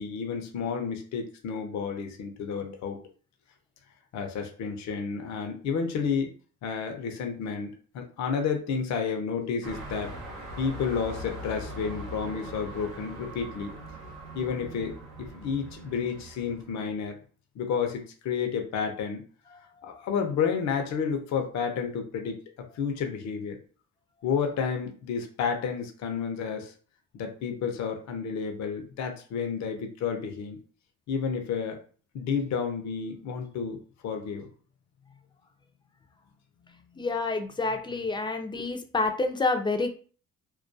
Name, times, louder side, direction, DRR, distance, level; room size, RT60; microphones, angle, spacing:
voice 1, 0.0-3.0 4.1-6.3 6.6-10.1 10.6-13.7 14.3-17.2 17.6-19.2 19.8-22.4 22.7-23.6 24.2-26.7 27.1-30.6 31.1-31.8 32.1-33.8 34.0-34.5 36.9-37.0, left 6 dB, 65° left, 4 dB, 0.6 m, -31 dB
sound 1, 9.6-16.9, right 1 dB, 80° right, 0.8 m, -41 dB
voice 2, 37.0-39.9, left 3 dB, 15° left, 6 dB, 0.4 m, -28 dB
2.3 x 2.2 x 2.5 m, 0.41 s
cardioid pair, 90°, 30 cm